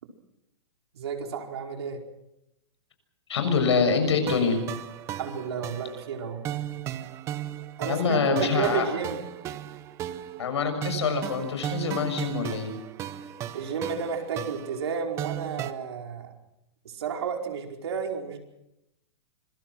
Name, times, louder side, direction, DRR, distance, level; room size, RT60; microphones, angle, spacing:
voice 1, 0.9-2.0 5.2-6.4 7.8-9.2 13.5-16.3 16.8-18.4, right 6 dB, 70° right, 3 dB, 4.9 m, -32 dB
voice 2, 3.3-4.6 7.8-8.8 10.4-12.7, left 5 dB, 80° left, 7 dB, 6.9 m, -25 dB
sound 1, 4.3-15.7, right 12 dB, 20° right, 0.8 m, -36 dB
26.0 x 22.0 x 6.3 m, 0.87 s
hypercardioid pair, 160°, 14 cm